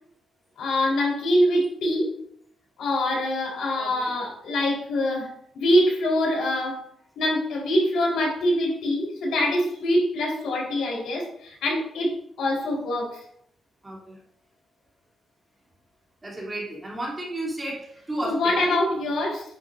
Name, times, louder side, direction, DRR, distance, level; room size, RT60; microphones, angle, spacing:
voice 1, 0.6-2.1 2.8-5.3 5.5-6.8 7.2-12.1 12.4-13.2 18.2-19.4, left 1 dB, 80° left, -1 dB, 4.1 m, -24 dB
voice 2, 3.7-4.1 13.8-14.2 16.2-18.6, right 1 dB, 15° right, -4 dB, 3.0 m, -33 dB
10.5 x 9.9 x 2.6 m, 0.68 s
wide cardioid pair, 170°, 0 cm